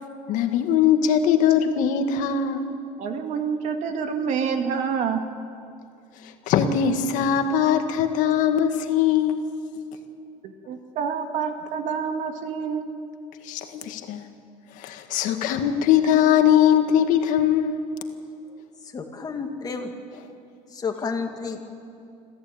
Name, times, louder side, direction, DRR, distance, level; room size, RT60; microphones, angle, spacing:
voice 1, 0.3-2.6 6.5-9.4 13.4-14.3 14.8-17.8, left 9 dB, 70° left, 6 dB, 1.9 m, -21 dB
voice 2, 3.0-5.3 10.4-12.9, right 6 dB, 65° right, 6 dB, 2.1 m, -27 dB
voice 3, 18.9-19.9 20.7-21.7, left 5 dB, 30° left, 3 dB, 2.4 m, -31 dB
26.5 x 15.0 x 8.9 m, 2.5 s
cardioid pair, 130°, 14 cm